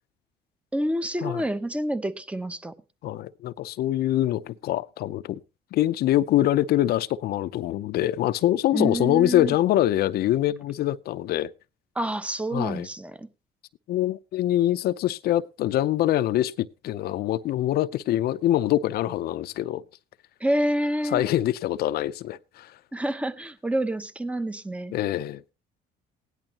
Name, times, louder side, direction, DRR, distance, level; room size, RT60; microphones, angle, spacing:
voice 1, 0.7-2.7 8.7-9.5 11.9-13.3 20.4-21.3 22.9-24.9, right 1 dB, 5° right, 0.9 m, -28 dB
voice 2, 3.0-5.4 5.7-11.5 12.5-12.9 13.9-19.8 21.1-22.7 24.9-25.4, left 13 dB, 65° left, 0.6 m, -24 dB
17.0 x 10.5 x 2.9 m
cardioid pair, 110°, 17 cm